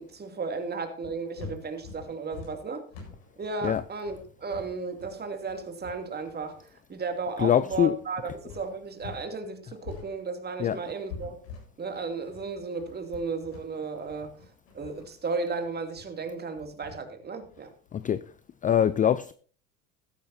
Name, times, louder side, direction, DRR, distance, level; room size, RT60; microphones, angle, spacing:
voice 1, 0.0-2.8 3.4-11.4 11.8-14.3 14.7-17.7, right 4 dB, 25° right, 2.7 m, -34 dB
sound 1, 1.0-9.3 9.5-18.3, left 5 dB, 75° left, 7.9 m, -46 dB
voice 2, 7.4-7.9 10.6-10.8 17.9-18.2 18.6-19.3, left 9 dB, 20° left, 0.5 m, -23 dB
15.0 x 13.5 x 2.7 m
hypercardioid pair, 95°, 40 cm